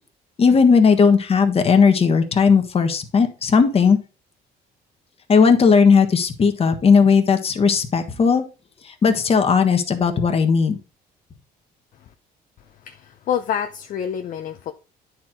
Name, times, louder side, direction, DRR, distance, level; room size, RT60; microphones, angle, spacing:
voice 1, 0.4-4.0 5.3-8.4 8.8-10.8, left 5 dB, 35° left, 1.3 m, -16 dB
voice 2, 12.7-14.7, left 9 dB, 50° left, 0.7 m, -28 dB
9.4 x 4.6 x 3.7 m
cardioid pair, 110°, 17 cm